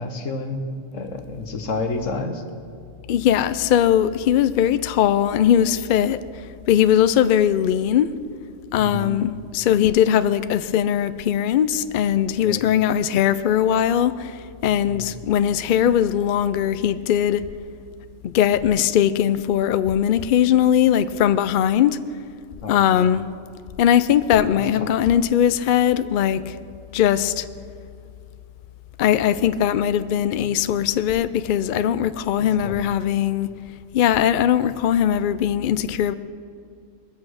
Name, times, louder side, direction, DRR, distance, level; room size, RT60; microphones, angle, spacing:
voice 1, 0.0-2.4 8.8-9.1 12.4-12.7 14.9-15.0 22.6-23.0 24.8-24.9 32.6-32.8, left 3 dB, 80° left, 1.6 m, -30 dB
voice 2, 3.1-6.2 6.7-8.1 8.7-17.5 18.2-22.0 22.7-23.3 23.8-26.6 26.9-27.5 29.0-33.5 33.9-36.1, left 10 dB, 60° left, 0.5 m, -20 dB
21.0 x 8.4 x 6.3 m
omnidirectional pair, 1.3 m